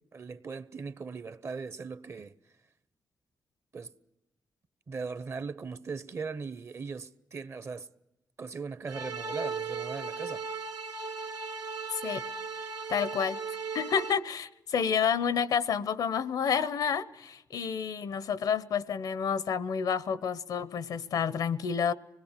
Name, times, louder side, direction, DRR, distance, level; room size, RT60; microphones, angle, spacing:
voice 1, 0.1-2.4 3.7-4.0 4.9-7.9 8.4-10.4, right 4 dB, 45° right, 0.9 m, -39 dB
sound 1, 8.9-14.1, right 4 dB, 85° right, 1.6 m, -37 dB
voice 2, 12.9-13.4 13.7-21.9, left 7 dB, 85° left, 0.8 m, -29 dB
26.0 x 19.5 x 7.4 m
cardioid pair, 100°, 6 cm